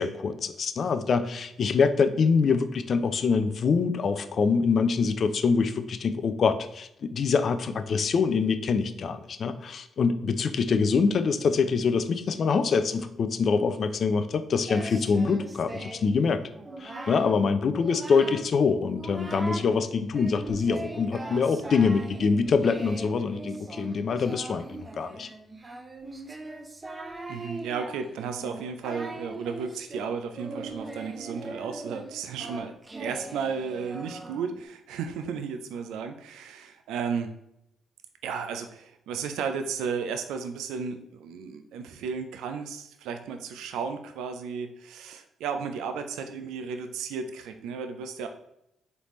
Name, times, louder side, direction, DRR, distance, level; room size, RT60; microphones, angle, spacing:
voice 1, 0.0-16.4 16.8-25.3, left 5 dB, 60° left, 10 dB, 0.4 m, -25 dB
Singing, 14.7-16.2 16.5-17.3 17.7-18.5 18.8-19.7 20.1-34.6, right 2 dB, 25° right, 0.6 m, -40 dB
voice 2, 27.3-37.3 38.2-48.3, right 6 dB, 85° right, 7 dB, 0.3 m, -34 dB
4.0 x 3.4 x 3.0 m, 0.80 s
supercardioid pair, 65°, 0 cm